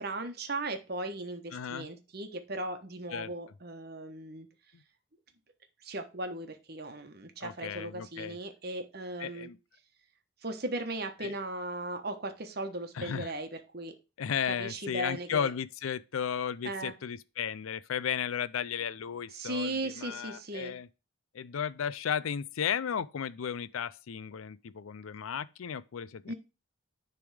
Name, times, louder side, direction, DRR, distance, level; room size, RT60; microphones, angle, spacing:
voice 1, 0.0-4.5 5.8-9.5 10.4-13.9 14.5-15.5 16.6-16.9 19.3-20.7 26.3-26.4, right 2 dB, 50° right, 1.1 m, -37 dB
voice 2, 1.5-1.9 3.1-3.3 4.7-4.8 7.4-8.4 9.2-9.6 11.2-11.3 12.9-13.3 14.2-20.9 21.3-26.3, left 8 dB, 85° left, 0.4 m, -34 dB
10.5 x 3.5 x 4.8 m
head